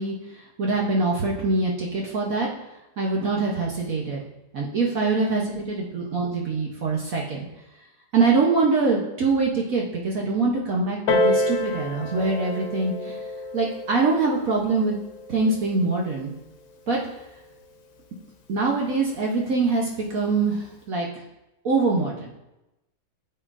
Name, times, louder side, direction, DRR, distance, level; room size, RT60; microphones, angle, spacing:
voice 1, 0.0-2.5 3.0-4.2 4.5-7.5 8.1-13.2 13.5-15.0 15.3-16.3 16.9-17.0 18.5-21.1 21.6-22.3, right 3 dB, 60° right, -2 dB, 1.2 m, -24 dB
Piano, 11.1-16.3 17.1-17.2, left 1 dB, 80° left, 1.5 m, -28 dB
8.7 x 6.8 x 2.5 m, 0.95 s
omnidirectional pair, 1.8 m